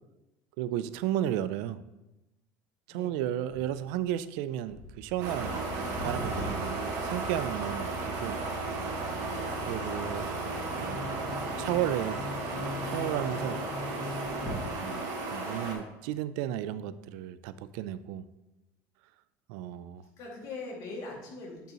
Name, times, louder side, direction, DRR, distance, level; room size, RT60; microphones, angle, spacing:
voice 1, 0.6-1.8 2.9-5.6 6.0-8.4 9.6-10.3 10.7-11.1 11.6-12.2 12.9-13.6 14.7-18.2 19.5-20.0, right 12 dB, 80° right, 14 dB, 0.4 m, -33 dB
sound 1, 3.5-7.9 8.5-8.6 9.3-9.6 9.9-10.6 11.1-11.8 12.1-12.2 12.5-12.6 14.1-15.2 15.8-15.9, equal, 5° left, 2.5 m, -43 dB
sound 2, 5.2-15.7, right 3 dB, 60° right, 1.9 m, -34 dB
Bowed string instrument, 10.6-15.4, left 2 dB, 35° left, 1.5 m, -41 dB
voice 2, 13.3-13.6 20.2-21.7, left 3 dB, 55° left, -2 dB, 2.2 m, -41 dB
8.9 x 5.4 x 2.9 m, 0.97 s
cardioid pair, 125°, 7 cm